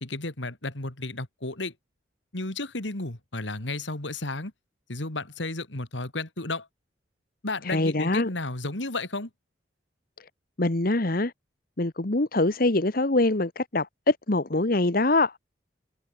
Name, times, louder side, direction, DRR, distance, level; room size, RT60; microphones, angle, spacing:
voice 1, 0.0-1.7 2.3-4.5 4.9-6.7 7.4-9.3, left 2 dB, 80° left, 3.0 m, -33 dB
voice 2, 7.6-8.3 10.6-11.3 11.8-15.3, left 2 dB, 50° left, 1.4 m, -24 dB
head